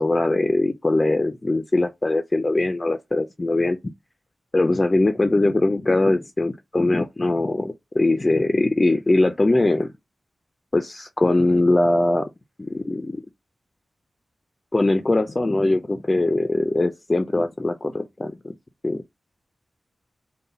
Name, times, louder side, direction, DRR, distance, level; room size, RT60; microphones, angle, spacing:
voice 1, 0.0-3.8 4.5-9.9 10.7-12.3 12.6-13.2 14.7-18.5 18.8-19.0, left 2 dB, 25° left, 0.3 m, -21 dB
3.9 x 2.1 x 3.8 m
wide cardioid pair, 120°, 0 cm